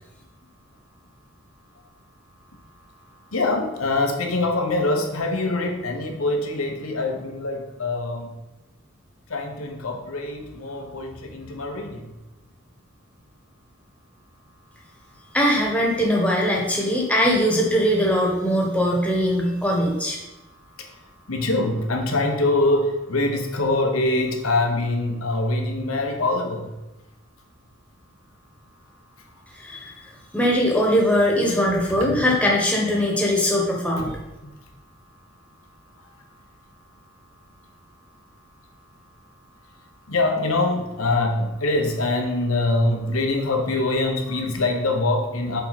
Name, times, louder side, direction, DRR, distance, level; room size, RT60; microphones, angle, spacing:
voice 1, 3.3-8.3 9.3-12.1 20.7-26.7 31.9-32.2 34.0-34.1 34.4-34.5 40.1-45.6, left 2 dB, 85° left, 3 dB, 1.1 m, -24 dB
voice 2, 15.3-20.2 29.6-29.9 30.3-34.2, equal, 5° left, -2 dB, 1.2 m, -21 dB
6.8 x 4.6 x 4.1 m, 1.0 s
head